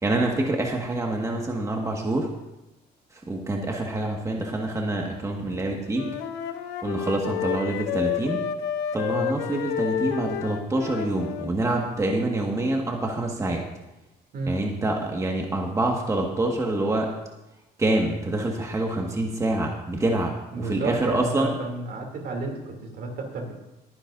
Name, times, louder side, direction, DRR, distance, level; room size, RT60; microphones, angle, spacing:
voice 1, 0.0-2.3 3.1-6.1 6.8-8.4 8.9-13.6 14.5-17.1 17.8-21.5, right 2 dB, 20° right, 0 dB, 1.7 m, -26 dB
Wind instrument woodwind instrument, 5.9-11.5, left 9 dB, 85° left, 1.0 m, -30 dB
voice 2, 20.5-23.5, right 3 dB, 65° right, 2 dB, 2.8 m, -31 dB
21.0 x 10.0 x 2.6 m, 0.98 s
cardioid pair, 110°, 17 cm